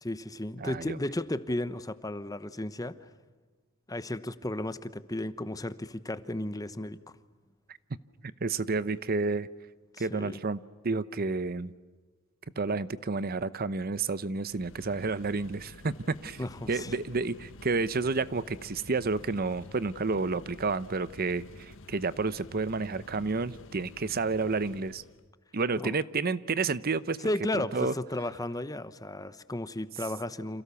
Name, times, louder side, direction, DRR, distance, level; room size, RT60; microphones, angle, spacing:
voice 1, 0.0-2.9 3.9-7.0 10.0-10.4 16.4-16.9 25.8-25.9 27.2-30.6, left 1 dB, 15° left, 13 dB, 1.0 m, -34 dB
voice 2, 0.6-1.0 8.2-9.5 10.0-11.7 12.6-25.0 25.5-27.2 27.5-27.9, right 3 dB, 45° right, 16 dB, 0.8 m, -30 dB
sound 1, 14.4-25.3, left 2 dB, 70° left, 1.6 m, -50 dB
29.5 x 27.5 x 7.0 m, 1.3 s
head